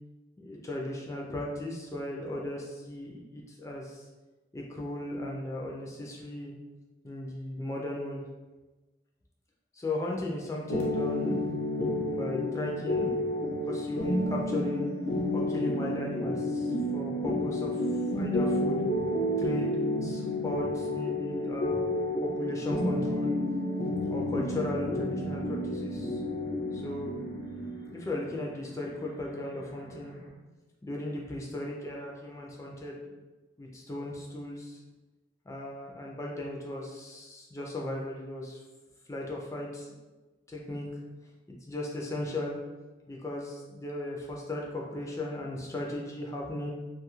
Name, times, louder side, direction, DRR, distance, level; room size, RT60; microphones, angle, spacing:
voice 1, 0.4-4.0 4.5-6.5 7.0-8.2 9.7-11.4 12.1-13.1 13.6-14.9 15.3-17.8 18.1-18.8 19.4-21.8 22.2-23.3 24.1-26.2 26.7-27.2 27.5-27.6 27.9-30.2 30.8-33.1 33.6-34.8 35.5-38.6 39.1-39.9 40.5-40.9 41.5-42.6 43.1-46.7, left 1 dB, 15° left, -2 dB, 0.3 m, -36 dB
sound 1, 10.7-30.3, left 1 dB, 85° left, 0.6 m, -31 dB
2.6 x 2.3 x 3.0 m, 1.2 s
head